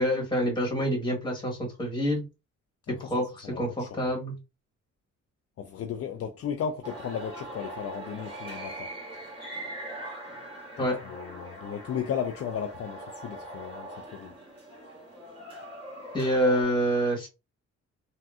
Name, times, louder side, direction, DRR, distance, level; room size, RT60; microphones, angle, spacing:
voice 1, 0.0-2.2 2.9-4.4 10.8-11.0 16.1-17.3, equal, 15° left, 1.4 m, -27 dB
voice 2, 3.4-4.1 5.6-8.9 10.8-14.3, left 8 dB, 50° left, 0.4 m, -35 dB
sound 1, 6.8-16.6, right 1 dB, 15° right, 1.8 m, -41 dB
3.6 x 2.2 x 2.4 m
cardioid pair, 90°, 30 cm